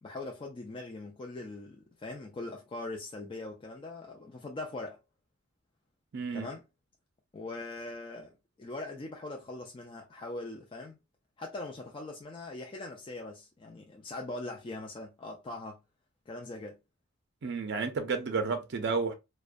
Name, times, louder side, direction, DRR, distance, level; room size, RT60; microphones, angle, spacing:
voice 1, 0.0-5.0 6.3-6.6 7.3-11.0 11.4-15.8 16.3-16.8, left 2 dB, 25° left, 0.3 m, -41 dB
voice 2, 6.1-6.5 17.4-19.1, right 4 dB, 55° right, 0.5 m, -31 dB
2.4 x 2.1 x 2.4 m
head